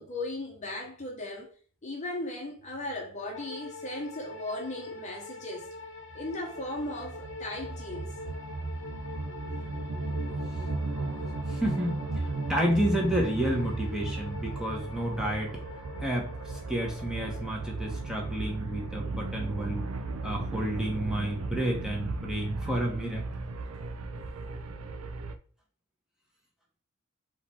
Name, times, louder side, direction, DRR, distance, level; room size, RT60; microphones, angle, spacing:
voice 1, 0.0-1.5 1.8-5.7 6.1-8.1, left 1 dB, 35° left, 0.8 m, -37 dB
sound 1, 3.3-22.9, left 3 dB, 60° left, 0.9 m, -46 dB
sound 2, 6.1-25.3, right 3 dB, 85° right, 0.5 m, -36 dB
voice 2, 11.5-15.6 16.0-19.8 20.2-23.3, right 1 dB, 5° right, 1.1 m, -30 dB
4.0 x 3.1 x 4.2 m
head